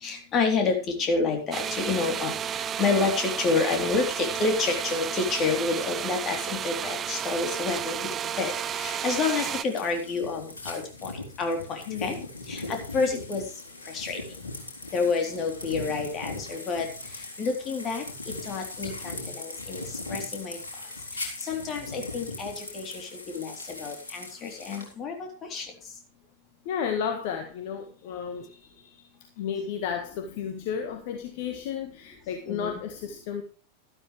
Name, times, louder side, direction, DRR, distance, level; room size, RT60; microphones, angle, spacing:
voice 1, 0.0-2.3 2.8-8.0 8.4-11.1 11.4-12.2 12.5-13.4 13.9-14.2 14.9-16.9 17.4-18.0 18.5-19.8 20.1-20.6 21.2-25.1 25.5-25.7 32.5-32.7, left 4 dB, 30° left, 4 dB, 3.7 m, -28 dB
sound 1, 1.5-9.6, right 9 dB, 25° right, 0.5 m, -32 dB
sound 2, 8.4-24.9, left 2 dB, 75° left, 3.8 m, -40 dB
voice 2, 11.9-12.3 26.6-29.1 29.4-33.4, left 7 dB, 50° left, 6 dB, 1.6 m, -33 dB
12.5 x 12.5 x 3.3 m, 0.36 s
figure-of-eight pair, 90°, 0 cm